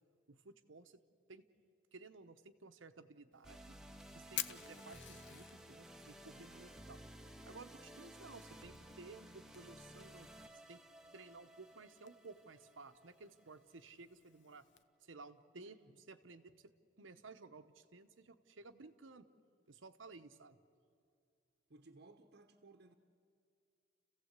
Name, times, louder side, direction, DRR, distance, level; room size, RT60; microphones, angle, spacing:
voice 1, 0.3-1.0 1.3-1.4 1.9-3.8 4.1-7.0 7.4-10.3 10.7-10.8 11.1-14.7 15.0-15.8 16.1-16.7 17.0-19.3 19.7-20.6, right 3 dB, 85° right, 1.0 m, -56 dB
Fire, 3.3-14.8, left 11 dB, 65° left, 0.7 m, -53 dB
sound 1, 3.4-13.8, right 1 dB, 5° right, 0.8 m, -56 dB
sound 2, 6.2-14.6 15.0-15.1, right 1 dB, 35° right, 0.8 m, -70 dB
voice 2, 15.6-16.0 21.7-22.9, right 2 dB, 60° right, 1.0 m, -61 dB
29.5 x 15.5 x 8.2 m
head